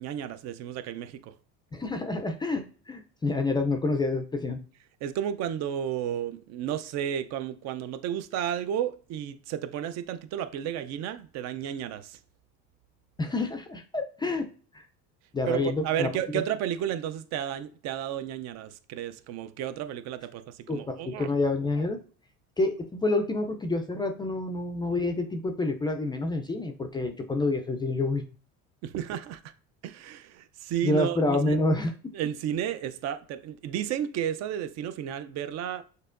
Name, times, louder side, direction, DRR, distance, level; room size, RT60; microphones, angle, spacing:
voice 1, 0.0-1.4 5.0-12.2 15.5-21.3 28.8-29.4 29.8-31.6 32.1-35.8, right 10 dB, 55° right, 0.5 m, -32 dB
voice 2, 1.7-4.6 13.2-14.5 14.7-14.8 15.3-16.1 20.7-22.0 22.6-28.2 30.8-31.9, left 2 dB, 15° left, 0.3 m, -28 dB
6.5 x 2.7 x 2.5 m
cardioid pair, 130°, 32 cm